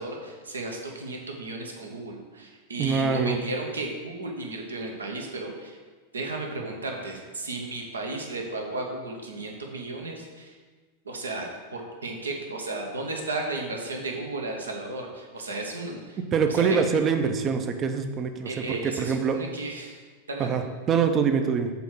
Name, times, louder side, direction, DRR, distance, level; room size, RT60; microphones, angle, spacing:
voice 1, 0.0-5.8 6.1-10.6 11.0-16.2 16.5-16.9 18.4-20.0 20.3-20.6, right 2 dB, 75° right, 2 dB, 1.1 m, -34 dB
voice 2, 2.8-3.4 16.3-19.4 20.4-21.7, right 6 dB, 30° right, 8 dB, 0.6 m, -24 dB
7.0 x 4.5 x 6.2 m, 1.4 s
figure-of-eight pair, 90°, 0 cm